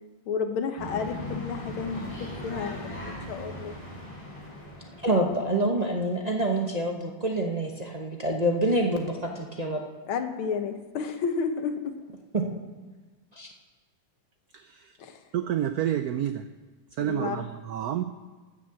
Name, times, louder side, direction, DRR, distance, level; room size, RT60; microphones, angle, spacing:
voice 1, 0.3-2.0 2.4-2.8 3.3-3.7 10.1-11.7 15.0-15.2 17.1-17.4, left 5 dB, 80° left, 7 dB, 1.9 m, -31 dB
sound 1, 0.8-5.6, left 1 dB, 15° left, 4.0 m, -38 dB
voice 2, 5.0-9.8 12.3-12.4 13.3-13.5, right 1 dB, 30° right, 0 dB, 0.7 m, -26 dB
voice 3, 14.5-15.0 15.3-16.5 16.9-18.0, right 11 dB, 85° right, 9 dB, 0.8 m, -29 dB
12.5 x 7.5 x 7.7 m, 1.3 s
omnidirectional pair, 2.3 m